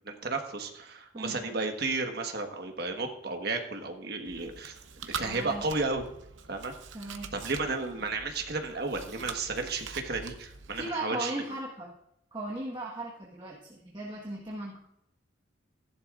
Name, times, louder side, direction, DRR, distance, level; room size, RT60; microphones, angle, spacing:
voice 1, 0.0-4.7 5.0-6.0 6.5-6.7 7.3-11.3, right 3 dB, 55° right, 4 dB, 1.4 m, -33 dB
voice 2, 1.1-1.5 5.2-5.7 6.9-7.3 10.7-11.9 12.3-14.8, right 2 dB, 25° right, -3 dB, 1.4 m, -37 dB
Chewing mastication, 4.2-10.9, right 5 dB, 75° right, 0.9 m, -44 dB
15.0 x 11.0 x 2.5 m, 0.80 s
head